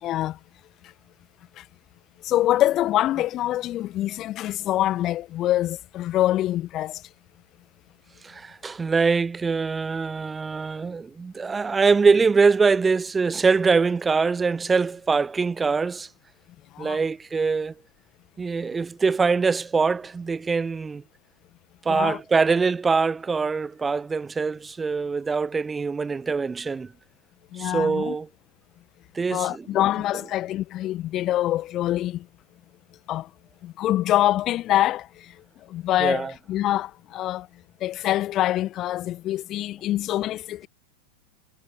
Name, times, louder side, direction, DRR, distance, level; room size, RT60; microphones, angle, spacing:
voice 1, 0.0-0.4 1.6-1.7 2.2-7.0 16.7-17.0 21.9-22.2 27.5-28.1 29.3-32.3 33.1-33.3 33.6-35.3 35.7-37.5 37.8-40.7, left 14 dB, 35° left, 1.6 m, -25 dB
voice 2, 8.2-16.1 16.8-17.7 18.4-21.0 21.8-26.9 27.5-28.3 29.1-29.6 36.0-36.3, right 4 dB, 15° right, 1.1 m, -23 dB
figure-of-eight pair, 90°, 0 cm